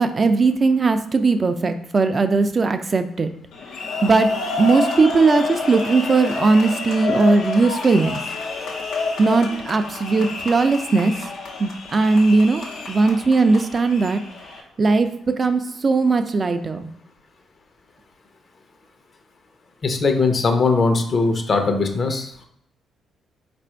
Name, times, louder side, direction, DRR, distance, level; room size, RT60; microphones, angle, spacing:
voice 1, 0.0-3.3 4.0-4.3 4.6-8.2 9.2-11.1 11.6-14.2 14.8-16.9, right 3 dB, 35° right, 9 dB, 0.5 m, -18 dB
sound 1, 3.5-14.6, left 3 dB, 75° left, 1.0 m, -29 dB
voice 2, 19.8-22.5, left 3 dB, 45° left, 5 dB, 0.8 m, -20 dB
4.1 x 2.5 x 4.4 m, 0.70 s
cardioid pair, 90°, 0 cm